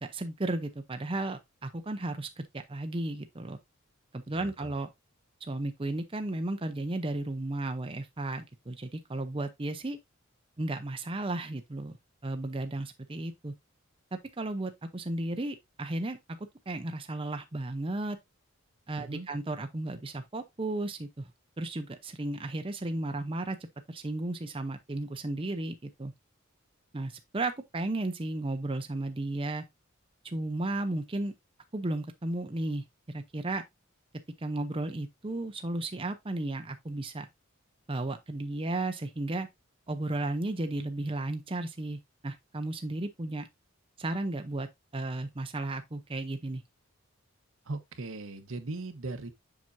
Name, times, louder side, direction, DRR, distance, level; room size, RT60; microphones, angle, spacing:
voice 1, 0.0-3.6 4.1-4.9 5.4-10.0 10.6-12.0 12.2-13.5 14.4-18.2 18.9-21.3 21.6-23.6 23.9-26.1 26.9-29.6 30.2-31.3 31.7-33.6 34.4-37.3 37.9-39.5 39.9-43.5 44.0-44.7 44.9-46.6, right 2 dB, 25° right, 0.7 m, -34 dB
voice 2, 4.3-4.7 18.9-19.3 47.7-49.3, right 2 dB, 75° right, 1.1 m, -39 dB
7.5 x 6.0 x 2.6 m
head